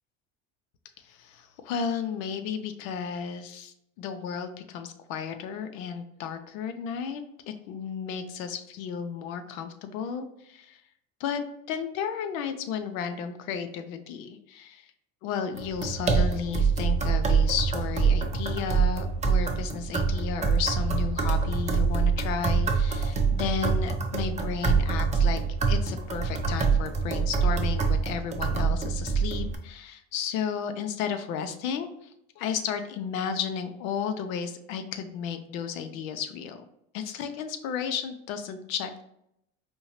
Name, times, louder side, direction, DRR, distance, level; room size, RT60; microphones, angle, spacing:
voice 1, 1.0-10.8 11.2-14.9 15.2-25.4 25.7-36.6 36.9-39.0, left 7 dB, 80° left, 8 dB, 0.6 m, -33 dB
sound 1, 15.6-29.6, right 5 dB, 20° right, 0.5 m, -25 dB
4.3 x 2.7 x 3.0 m, 0.77 s
supercardioid pair, 85°, 40 cm